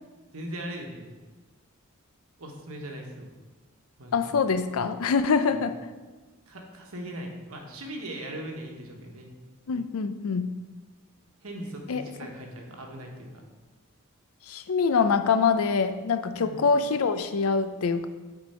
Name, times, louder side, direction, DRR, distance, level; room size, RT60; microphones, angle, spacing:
voice 1, 0.3-1.1 2.4-3.3 4.0-4.2 5.5-5.6 6.5-9.3 11.4-13.3 16.3-16.7, right 1 dB, 75° right, 1 dB, 1.2 m, -39 dB
voice 2, 4.1-5.8 9.7-10.4 11.9-12.0 14.5-18.1, left 5 dB, 75° left, 11 dB, 0.5 m, -24 dB
8.7 x 4.4 x 4.4 m, 1.3 s
head